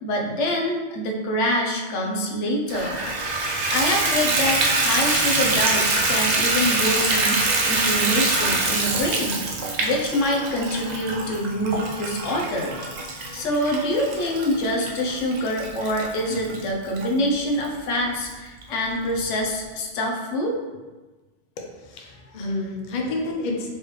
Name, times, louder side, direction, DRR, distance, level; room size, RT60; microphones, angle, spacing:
voice 1, 0.0-3.0 3.7-9.4 9.8-12.8 13.3-20.6, left 1 dB, 80° left, 0 dB, 1.0 m, -25 dB
Water tap faucet / Bathtub (filling or washing), 2.7-17.1 17.6-17.7 18.2-18.3 18.6-18.7, right 2 dB, 50° right, 0.5 m, -24 dB
voice 2, 21.8-23.8, left 2 dB, 50° left, 1 dB, 0.6 m, -29 dB
4.3 x 3.2 x 3.1 m, 1.2 s
omnidirectional pair, 1.2 m